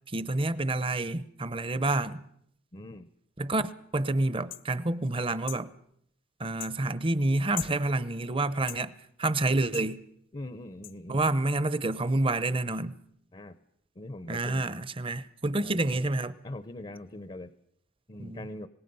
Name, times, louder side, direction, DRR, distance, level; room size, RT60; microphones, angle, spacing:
voice 1, 0.1-2.2 3.4-5.7 6.4-8.9 9.2-10.0 11.1-12.9 14.3-16.3 18.2-18.5, right 2 dB, 25° right, 0.8 m, -28 dB
voice 2, 2.7-3.1 10.3-11.2 13.3-13.6 14.0-14.6 15.6-16.0 16.4-17.5 18.1-18.7, left 1 dB, 30° left, 0.7 m, -42 dB
sound 1, 4.5-4.7 5.5-5.7 6.6-6.8 7.6-7.8 8.7-8.8 9.7-9.9 10.8-10.9, left 15 dB, 70° left, 0.7 m, -39 dB
25.0 x 19.5 x 5.5 m
head